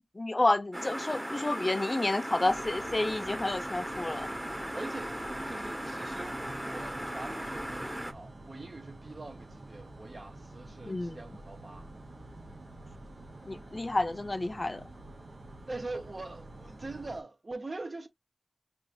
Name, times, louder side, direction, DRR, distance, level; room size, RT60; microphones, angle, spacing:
voice 1, 0.1-4.3 10.9-11.2 13.5-14.8, left 2 dB, 40° left, 0.6 m, -30 dB
sound 1, 0.7-8.1, equal, 10° right, 1.0 m, -37 dB
sound 2, 2.4-17.2, right 2 dB, 75° right, 1.0 m, -49 dB
voice 2, 4.7-5.2 5.4-11.9 15.7-18.1, right 2 dB, 60° right, 1.1 m, -43 dB
5.8 x 3.1 x 2.5 m
wide cardioid pair, 45°, 0 cm